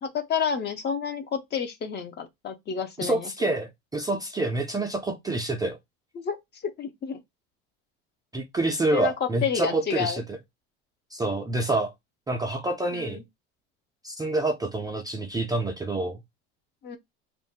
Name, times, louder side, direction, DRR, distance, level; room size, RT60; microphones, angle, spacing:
voice 1, 0.0-3.5 6.2-7.2 8.9-10.2 12.9-13.2 16.8-17.0, left 7 dB, 35° left, 0.6 m, -30 dB
voice 2, 3.0-5.8 8.3-10.4 11.1-11.9 12.3-13.2 14.0-16.2, right 2 dB, 10° right, 0.3 m, -27 dB
2.5 x 2.1 x 3.4 m
supercardioid pair, 115°, 31 cm